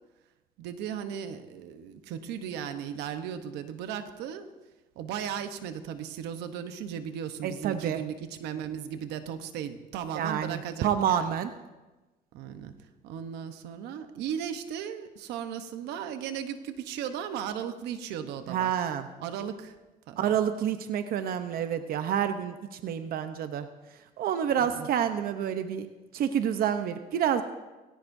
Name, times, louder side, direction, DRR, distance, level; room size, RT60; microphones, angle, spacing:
voice 1, 0.6-4.5 5.0-11.3 12.3-12.7 13.0-18.7 19.2-19.8 20.1-20.4 24.6-24.9, right 8 dB, 90° right, 9 dB, 1.0 m, -36 dB
voice 2, 7.4-8.0 10.2-11.5 18.5-19.1 20.2-23.7 24.2-25.9 26.1-27.4, right 9 dB, 65° right, 9 dB, 0.8 m, -28 dB
18.5 x 17.0 x 2.7 m, 1.1 s
cardioid pair, 110°, 17 cm